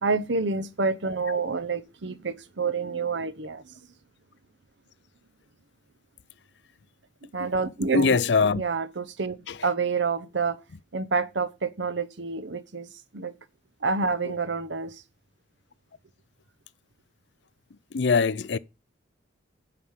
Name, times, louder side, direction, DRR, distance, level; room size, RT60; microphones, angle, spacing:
voice 1, 0.0-3.6 7.3-8.2 8.6-10.6 10.9-12.9 13.1-13.3 13.8-14.9, right 4 dB, 65° right, 0.9 m, -28 dB
voice 2, 7.9-8.6 9.5-9.7 14.2-14.3 17.9-18.6, left 4 dB, 65° left, 0.5 m, -23 dB
11.0 x 4.9 x 7.3 m
head